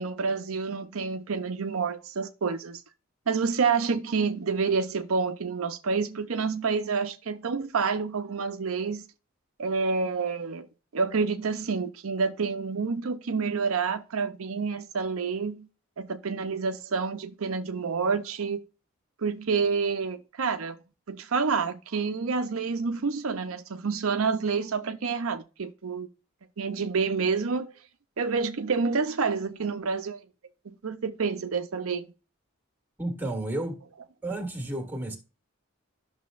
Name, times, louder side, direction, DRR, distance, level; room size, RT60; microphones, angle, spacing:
voice 1, 0.0-2.8 3.3-9.0 9.6-10.7 10.9-15.7 16.0-18.6 19.2-20.8 21.1-26.1 26.6-27.7 28.2-30.2 30.8-32.1, right 5 dB, 80° right, 0.6 m, -28 dB
voice 2, 33.0-33.8 34.2-35.2, right 1 dB, 10° right, 1.6 m, -32 dB
11.0 x 6.4 x 2.5 m
head